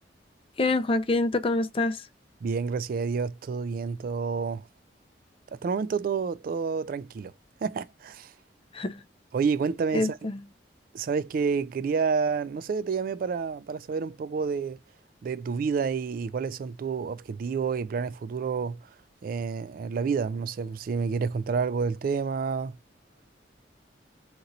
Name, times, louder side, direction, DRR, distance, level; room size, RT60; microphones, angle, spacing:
voice 1, 0.6-2.1 8.7-9.0 9.9-10.4, left 2 dB, 30° left, 0.5 m, -26 dB
voice 2, 2.4-4.7 5.6-7.3 7.6-8.3 9.3-10.2 10.9-14.8 15.2-18.8 19.2-22.8, right 5 dB, 50° right, 0.3 m, -29 dB
3.9 x 3.0 x 3.9 m
head